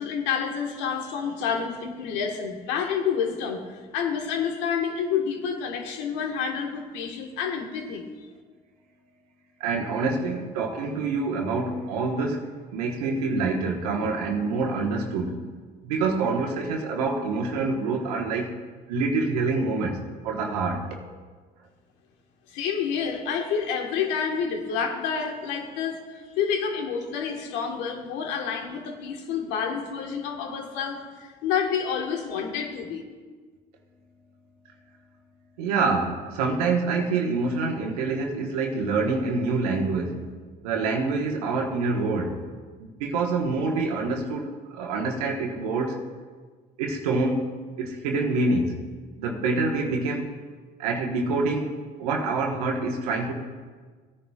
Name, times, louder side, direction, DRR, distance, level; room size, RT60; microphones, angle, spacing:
voice 1, 0.0-8.1 22.5-26.0 26.4-33.0, left 7 dB, 80° left, 3 dB, 1.4 m, -29 dB
voice 2, 9.6-15.4 15.8-18.5 18.9-20.9 35.6-40.3 40.6-42.4 42.8-46.0 46.8-47.5 47.8-48.8 49.2-50.3 50.8-53.3, right 3 dB, 90° right, 1 dB, 1.3 m, -26 dB
17.0 x 9.8 x 2.4 m, 1.4 s
hypercardioid pair, 60°, 19 cm